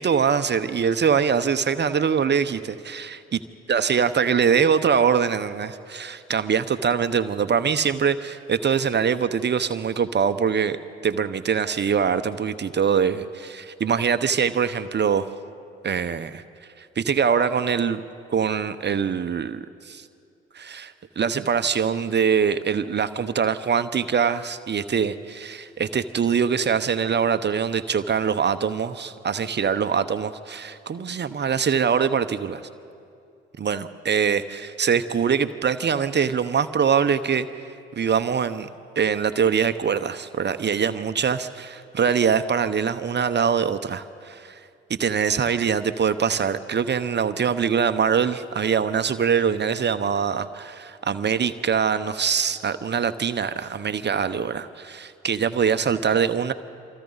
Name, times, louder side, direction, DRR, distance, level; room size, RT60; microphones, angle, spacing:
voice 1, 0.0-3.4 3.7-10.8 11.0-15.3 15.8-16.4 16.8-18.0 18.3-20.0 20.5-32.6 33.6-37.5 38.0-38.7 39.0-44.6 45.0-56.5, right 7 dB, 35° right, 11 dB, 0.9 m, -23 dB
27.0 x 25.0 x 4.1 m, 2.5 s
hypercardioid pair, 50°, 29 cm